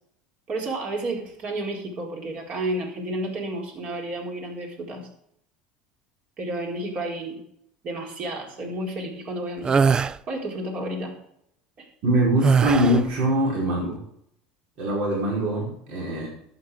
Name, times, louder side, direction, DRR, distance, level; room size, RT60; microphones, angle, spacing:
voice 1, 0.5-5.1 6.4-7.4 7.8-9.9 10.3-11.1 11.8-11.9, right 1 dB, 50° right, 0 dB, 4.3 m, -31 dB
sound 1, 9.6-10.2 12.4-13.1, right 5 dB, 25° right, 0.4 m, -20 dB
voice 2, 12.0-14.0 14.8-16.3, right 1 dB, 65° right, -3 dB, 5.0 m, -23 dB
11.5 x 9.0 x 5.0 m, 0.73 s
supercardioid pair, 100°, 3 cm